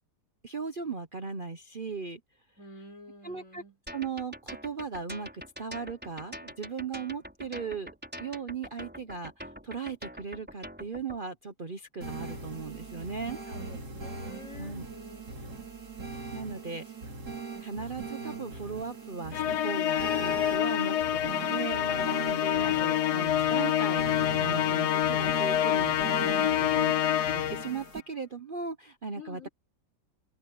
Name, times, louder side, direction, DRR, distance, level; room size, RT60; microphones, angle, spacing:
voice 1, 0.4-2.2 3.2-3.6 3.9-7.9 8.2-13.4 14.6-14.8 16.3-16.8 17.6-26.9 27.3-29.5, right 5 dB, 40° right, 0.9 m, -37 dB
voice 2, 2.6-3.8 13.5-15.8 16.7-16.8 22.5-22.9 29.1-29.5, left 2 dB, 50° left, 4.4 m, -49 dB
sound 1, 3.9-11.2, equal, 5° right, 4.7 m, -44 dB
sound 2, 12.0-28.0, right 3 dB, 70° right, 3.3 m, -41 dB
Musical instrument, 19.3-27.8, left 11 dB, 75° left, 1.4 m, -27 dB
omnidirectional pair, 1.7 m